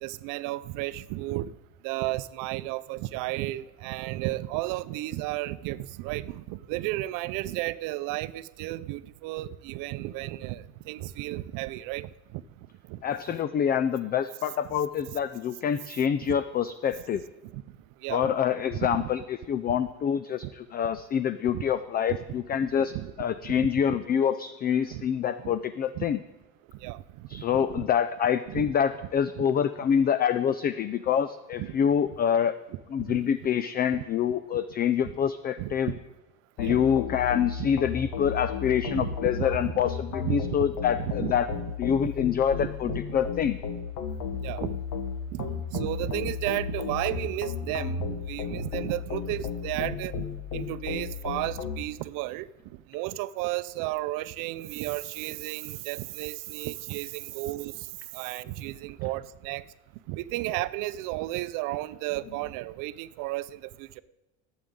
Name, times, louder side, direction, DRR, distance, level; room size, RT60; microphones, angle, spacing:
voice 1, 0.0-1.5 1.8-12.4 12.9-13.0 16.3-16.4 17.5-17.6 18.0-18.3 18.9-19.1 19.7-19.8 21.5-21.6 22.1-22.2 22.8-23.1 23.4-24.0 24.9-25.0 25.4-25.5 26.0-26.1 26.8-27.0 27.3-27.9 28.5-28.7 29.4-29.5 31.6-31.7 33.1-33.2 33.9-34.0 35.0-35.2 35.6-36.0 36.6-37.0 37.6-37.7 38.9-39.1 39.6-39.7 40.2-40.4 41.0-41.6 42.6-43.0 44.4-44.8 45.3-50.3 50.5-52.5 52.9-57.7 58.1-59.6 60.1-64.0, right 17 dB, 70° right, 15 dB, 0.6 m, -33 dB
voice 2, 13.0-17.2 18.1-22.9 23.2-26.2 27.3-32.6 32.9-35.9 36.6-41.5 41.8-43.6, left 8 dB, 30° left, 13 dB, 0.4 m, -26 dB
sound 1, 36.6-51.8, left 6 dB, 60° left, 1.3 m, -34 dB
20.5 x 8.1 x 3.8 m, 1.1 s
supercardioid pair, 120°, 34 cm